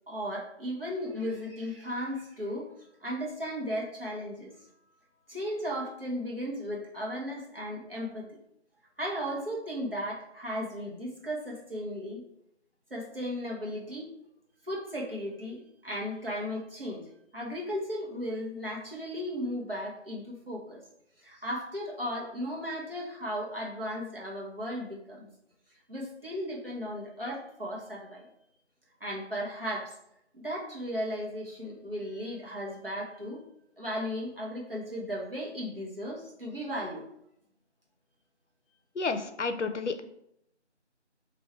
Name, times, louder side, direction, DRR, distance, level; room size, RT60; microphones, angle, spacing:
voice 1, 0.1-2.7 3.0-4.5 5.3-8.3 9.0-12.2 12.9-14.1 14.6-17.0 17.3-20.8 21.2-25.3 25.9-28.3 29.0-30.0 30.3-33.4 33.8-37.0, equal, 50° right, -3 dB, 1.1 m, -35 dB
voice 2, 39.0-40.0, left 4 dB, 75° left, 9 dB, 0.5 m, -31 dB
3.2 x 2.7 x 4.2 m, 0.77 s
figure-of-eight pair, 180°, 36 cm